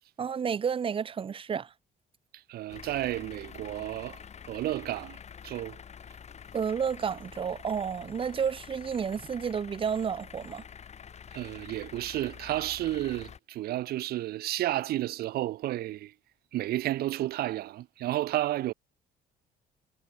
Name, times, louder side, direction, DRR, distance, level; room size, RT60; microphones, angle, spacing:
voice 1, 0.2-1.7 6.5-10.6, right 7 dB, 30° right, 0.9 m, -31 dB
voice 2, 2.5-4.2 4.5-5.2 5.4-5.8 11.3-16.1 16.5-18.7, right 15 dB, 65° right, 0.8 m, -31 dB
sound 1, 2.7-13.4, left 7 dB, 40° left, 6.7 m, -47 dB
cardioid pair, 110°, 17 cm